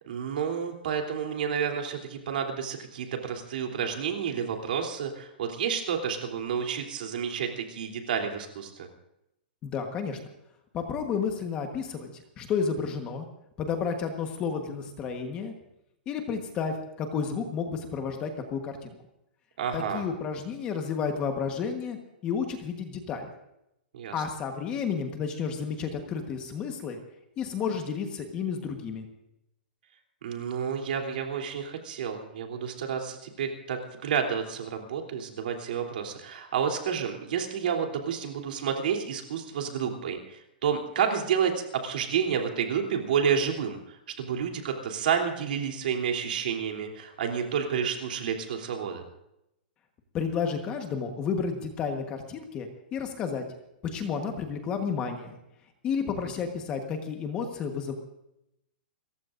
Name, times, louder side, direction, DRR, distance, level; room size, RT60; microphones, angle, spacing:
voice 1, 0.1-8.9 19.6-20.0 23.9-24.2 30.2-49.0, right 7 dB, 55° right, 3 dB, 3.2 m, -30 dB
voice 2, 9.6-10.2 10.7-13.3 13.6-15.5 16.1-18.9 19.7-22.0 22.2-23.3 24.1-27.0 27.4-29.1 50.1-53.4 53.9-55.4 55.8-57.9, left 6 dB, 15° left, 5 dB, 1.3 m, -31 dB
29.0 x 15.0 x 2.6 m, 0.84 s
hypercardioid pair, 180°, 6 cm